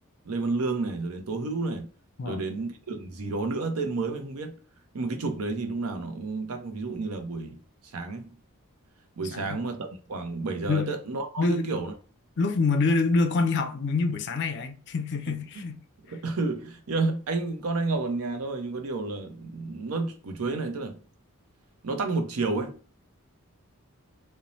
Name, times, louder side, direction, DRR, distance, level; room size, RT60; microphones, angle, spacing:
voice 1, 0.3-1.9 2.2-4.5 4.9-7.6 7.9-8.4 9.2-11.9 15.3-15.6 16.1-21.0 21.8-22.8, right 3 dB, 75° right, 0.6 m, -31 dB
voice 2, 11.4-11.8 12.4-15.8, left 3 dB, 50° left, 0.4 m, -26 dB
2.6 x 2.0 x 2.9 m
head